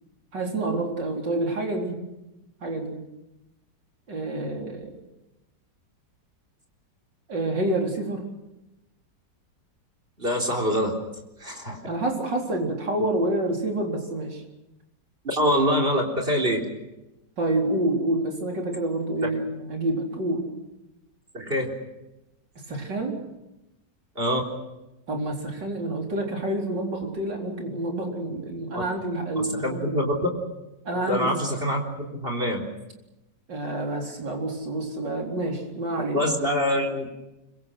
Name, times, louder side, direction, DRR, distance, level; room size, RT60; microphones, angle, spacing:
voice 1, 0.3-2.0 2.6-3.0 4.1-5.0 7.3-8.2 11.9-14.4 17.4-20.5 22.7-23.2 25.1-30.1 30.8-31.5 33.5-36.2, right 2 dB, 80° right, 1 dB, 4.8 m, -28 dB
voice 2, 10.2-11.0 11.4-11.9 15.2-16.7 19.2-19.4 21.3-21.7 24.2-24.4 28.7-28.8 29.4-30.3 30.9-32.6 36.1-37.1, equal, 30° right, 2 dB, 4.1 m, -25 dB
26.0 x 24.0 x 6.4 m, 0.96 s
omnidirectional pair, 1.9 m